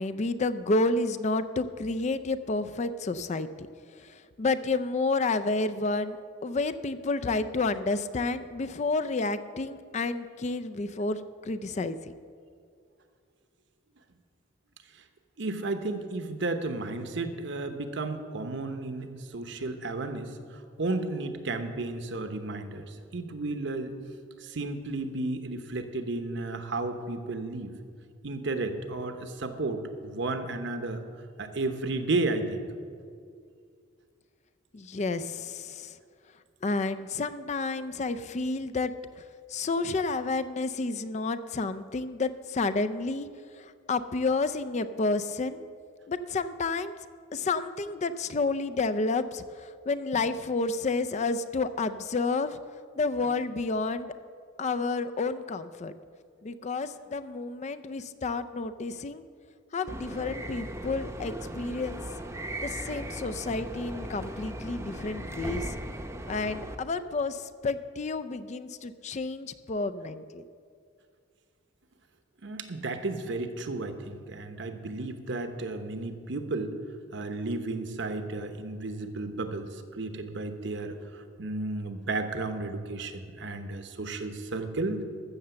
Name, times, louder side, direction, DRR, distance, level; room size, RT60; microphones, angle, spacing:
voice 1, 0.0-3.5 4.0-12.1 34.7-35.9 36.6-39.2 39.5-43.3 43.6-45.6 46.1-46.9 47.3-52.6 53.0-54.1 54.6-55.9 56.4-59.2 59.7-62.0 62.6-65.8 66.3-70.4, left 3 dB, 35° left, 12 dB, 0.4 m, -30 dB
voice 2, 15.4-23.9 24.4-27.7 28.2-31.0 31.4-32.7 50.1-50.2 72.4-76.8 77.1-85.0, right 2 dB, 65° right, 7 dB, 1.0 m, -33 dB
sound 1, 59.9-66.8, right 1 dB, 15° right, 0.7 m, -38 dB
14.0 x 6.8 x 6.9 m, 2.3 s
head